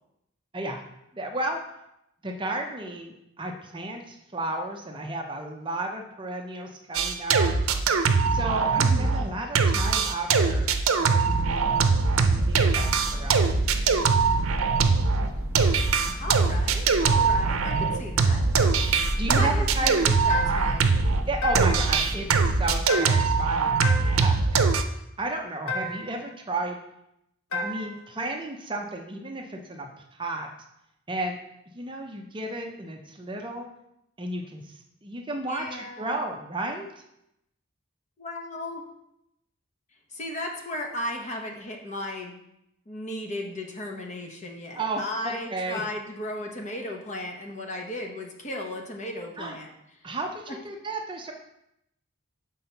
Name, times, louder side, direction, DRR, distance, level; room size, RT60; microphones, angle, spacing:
voice 1, 1.1-1.6 2.2-7.5 8.3-10.7 11.0-11.9 12.2-13.6 19.1-20.1 21.3-23.8 24.2-24.7 25.2-26.8 27.5-29.9 30.2-30.5 31.1-31.4 31.7-33.7 34.2-34.7 35.0-36.9 44.7-45.8 49.4-49.6 50.0-51.3, right 2 dB, 25° right, 2 dB, 0.6 m, -33 dB
sound 1, 6.9-9.3 9.5-21.2 21.5-24.8, right 5 dB, 85° right, 0.6 m, -22 dB
voice 2, 8.8-9.2 16.2-18.4 19.2-21.0 35.5-36.2 38.2-38.8 40.1-42.3 42.9-49.7 50.5-50.6, left 1 dB, 35° left, 1 dB, 0.9 m, -35 dB
sound 2, 11.3-22.7, equal, 10° left, 1.4 m, -33 dB
sound 3, 20.3-20.8 21.4-22.0 22.9-23.4 23.8-24.4 25.7-26.2 27.5-28.0, left 2 dB, 90° left, 1.1 m, -33 dB
6.1 x 3.8 x 5.5 m, 0.81 s
head